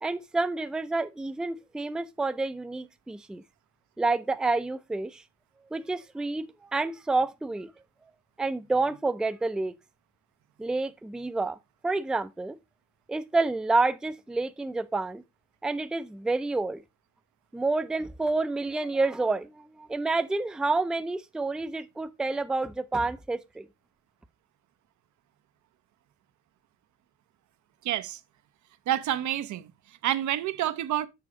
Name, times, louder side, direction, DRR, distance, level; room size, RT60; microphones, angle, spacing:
voice 1, 0.0-3.4 4.0-5.2 5.7-7.7 8.4-9.7 10.6-11.6 11.8-12.6 13.1-15.2 15.6-16.8 17.5-23.7, right 3 dB, ahead, 0.4 m, -29 dB
voice 2, 27.8-28.2 28.9-31.1, right 12 dB, 70° right, 0.6 m, -29 dB
6.9 x 4.9 x 3.6 m
cardioid pair, 90°, 30 cm